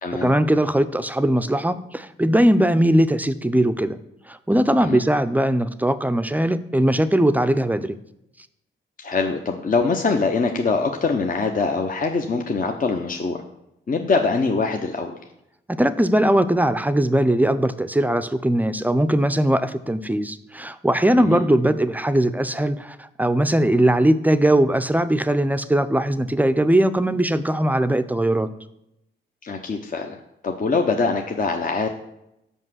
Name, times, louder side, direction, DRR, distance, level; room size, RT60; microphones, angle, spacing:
voice 1, 0.2-4.0 4.3-7.9 15.8-28.5, right 1 dB, 10° right, 11 dB, 0.5 m, -20 dB
voice 2, 9.0-13.4 13.9-15.2 21.2-21.4 29.4-30.2 30.4-31.9, left 4 dB, 40° left, 3 dB, 0.7 m, -23 dB
5.5 x 5.0 x 6.3 m, 0.84 s
supercardioid pair, 50°, 21 cm